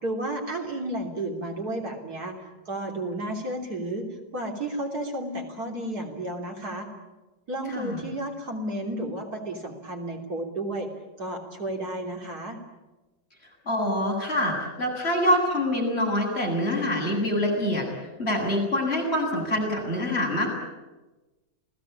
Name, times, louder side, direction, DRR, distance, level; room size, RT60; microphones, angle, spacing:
voice 1, 0.0-6.9 7.5-10.9 11.2-12.6, right 1 dB, 55° right, 2 dB, 3.8 m, -32 dB
voice 2, 13.7-17.9 18.2-20.5, left 1 dB, 35° left, -1 dB, 8.3 m, -25 dB
29.0 x 19.0 x 8.7 m, 1.1 s
omnidirectional pair, 1.9 m